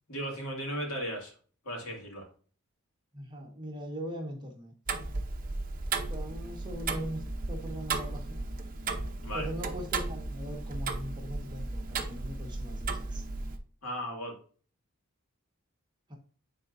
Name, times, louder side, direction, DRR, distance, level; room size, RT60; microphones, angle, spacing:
voice 1, 0.1-1.3 1.6-2.3 9.2-9.5 13.8-14.3, equal, 75° left, 0 dB, 2.4 m, -36 dB
voice 2, 3.1-4.7 6.0-8.5 9.3-13.2 16.1-16.2, equal, 20° right, 0 dB, 1.3 m, -40 dB
Tick-tock, 4.9-13.6, right 3 dB, 40° right, 0.7 m, -35 dB
9.9 x 4.0 x 2.6 m, 0.42 s
head